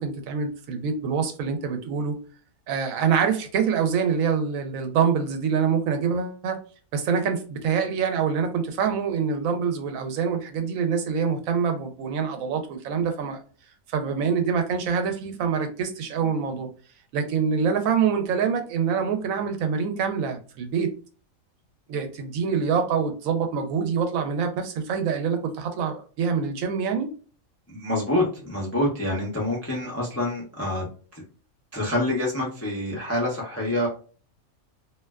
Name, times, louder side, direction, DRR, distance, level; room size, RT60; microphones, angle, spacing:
voice 1, 0.0-2.2 2.7-6.6 6.9-13.4 13.9-16.7 17.1-20.9 21.9-27.1, right 6 dB, 75° right, 6 dB, 1.0 m, -25 dB
voice 2, 27.7-30.9 31.1-31.2 31.7-33.9, left 1 dB, 25° left, -3 dB, 0.3 m, -26 dB
2.5 x 2.2 x 2.2 m, 0.39 s
omnidirectional pair, 1.5 m